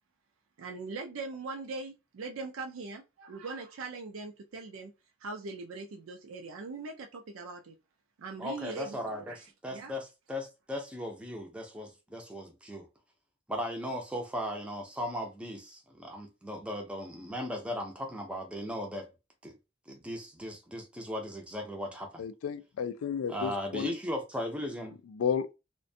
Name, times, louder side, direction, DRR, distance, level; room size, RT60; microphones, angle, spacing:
voice 1, 0.6-4.9 5.2-7.7 8.2-9.0 9.3-9.4 9.7-9.9, right 3 dB, 90° right, 0.4 m, -41 dB
voice 2, 8.4-12.9 13.5-19.1 19.4-19.5 19.9-22.2 23.3-25.0, equal, 5° right, 0.4 m, -37 dB
voice 3, 22.2-23.9 25.1-25.5, left 7 dB, 90° left, 0.3 m, -32 dB
2.5 x 2.1 x 2.6 m
head